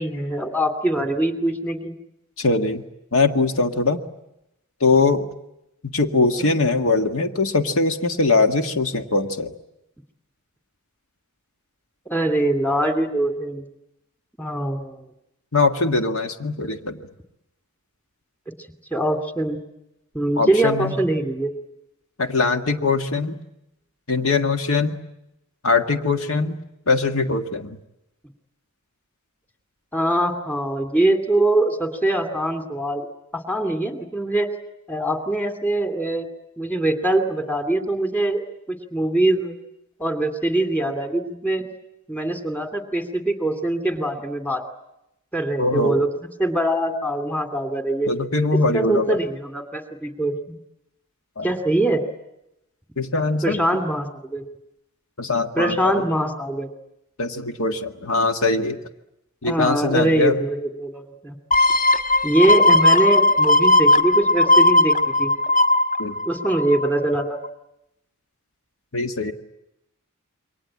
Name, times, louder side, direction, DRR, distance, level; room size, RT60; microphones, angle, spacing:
voice 1, 0.0-2.0 6.2-6.3 12.1-13.6 14.4-15.0 18.9-19.6 20.1-21.5 29.9-33.1 33.3-34.5 34.9-36.3 36.6-39.6 40.0-41.6 42.1-44.6 45.3-46.1 46.4-48.1 48.7-50.6 51.4-52.0 53.4-54.4 55.6-56.7 59.4-61.4 62.2-65.3 66.3-67.4, right 1 dB, 10° left, 7 dB, 2.5 m, -23 dB
voice 2, 2.4-2.8 3.1-4.0 4.8-5.3 5.9-9.5 15.5-17.0 20.4-20.9 22.2-23.4 24.1-25.0 25.6-26.6 26.9-27.8 45.6-46.0 48.1-49.2 51.4-51.5 53.0-53.6 55.2-56.0 57.2-58.8 59.4-60.4 66.0-66.2 68.9-69.3, left 3 dB, 70° left, 6 dB, 1.8 m, -21 dB
sound 1, 61.5-67.0 67.4-67.5, left 2 dB, 35° left, 1.6 m, -17 dB
28.5 x 23.5 x 8.8 m, 0.86 s
head